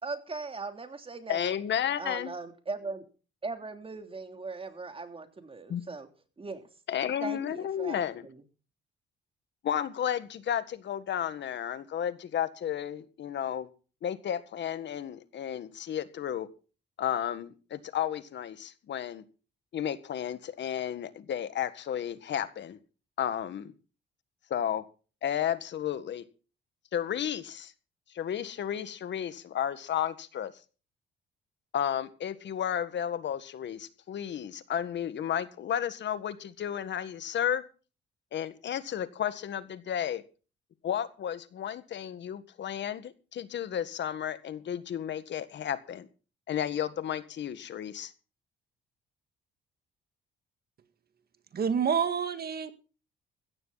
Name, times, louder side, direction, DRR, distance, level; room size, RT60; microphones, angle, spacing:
voice 1, 0.0-1.6 2.0-3.1 3.4-6.1 6.4-6.7 7.2-8.4, right 3 dB, 30° right, 7 dB, 3.2 m, -39 dB
voice 2, 1.3-2.3 5.7-5.8 6.9-8.2 9.6-13.7 14.0-16.5 17.0-19.2 19.7-22.8 23.2-23.7 24.5-24.8 25.2-26.2 26.9-27.7 28.1-30.5 31.7-37.6 38.3-40.2 40.8-46.1 46.5-48.1, left 9 dB, 65° left, 13 dB, 1.6 m, -32 dB
voice 3, 51.5-52.7, right 7 dB, 50° right, 10 dB, 2.1 m, -28 dB
16.0 x 14.0 x 4.1 m, 0.36 s
cardioid pair, 90°, 20 cm